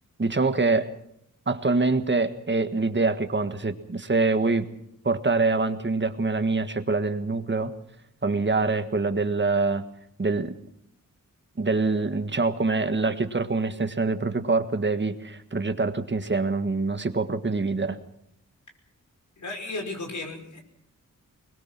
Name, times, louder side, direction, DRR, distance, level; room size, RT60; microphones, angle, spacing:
voice 1, 0.2-0.9 1.5-4.7 5.0-7.7 8.2-9.8 10.2-10.5 11.6-18.0, right 3 dB, 35° right, 9 dB, 1.7 m, -25 dB
voice 2, 19.4-20.6, left 2 dB, 60° left, 3 dB, 5.5 m, -34 dB
21.5 x 21.5 x 6.1 m, 0.74 s
wide cardioid pair, 80°, 33 cm